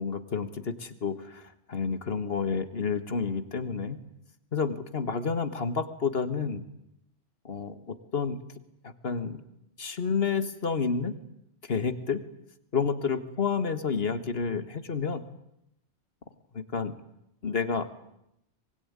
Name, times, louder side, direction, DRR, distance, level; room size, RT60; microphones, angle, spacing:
voice 1, 0.0-1.4 1.7-4.0 4.5-6.6 7.5-8.4 8.8-9.4 9.8-11.1 11.7-12.2 12.7-15.2 16.5-16.9 17.4-17.9, left 5 dB, 65° left, 11 dB, 1.8 m, -30 dB
24.5 x 21.5 x 9.7 m, 0.82 s
omnidirectional pair, 1.1 m